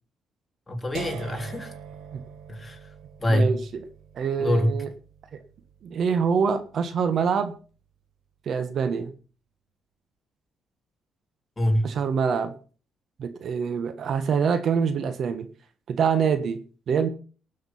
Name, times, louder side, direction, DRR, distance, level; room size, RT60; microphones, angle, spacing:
voice 1, 0.7-1.7 2.5-2.8 3.2-3.6 4.4-4.8 11.6-11.9, equal, 20° left, 3 dB, 3.4 m, -24 dB
sound 1, 0.9-6.9, right 7 dB, 85° right, 1.6 m, -43 dB
voice 2, 4.1-4.9 5.8-7.5 8.5-9.1 11.8-12.5 13.2-15.5 15.9-16.6 16.9-17.1, right 6 dB, 60° right, 11 dB, 1.4 m, -25 dB
18.5 x 6.5 x 5.7 m, 0.39 s
cardioid pair, 90°, 0 cm